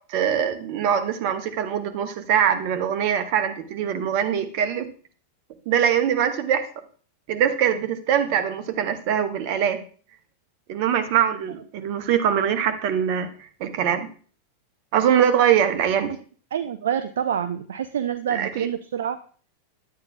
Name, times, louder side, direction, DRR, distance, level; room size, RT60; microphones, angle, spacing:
voice 1, 0.1-4.9 5.7-6.7 7.3-9.8 10.7-14.1 14.9-16.1 18.3-18.7, right 9 dB, 45° right, 8 dB, 1.0 m, -23 dB
voice 2, 16.5-19.2, right 9 dB, 60° right, 11 dB, 0.4 m, -27 dB
10.0 x 8.8 x 2.3 m, 0.43 s
figure-of-eight pair, 90°, 0 cm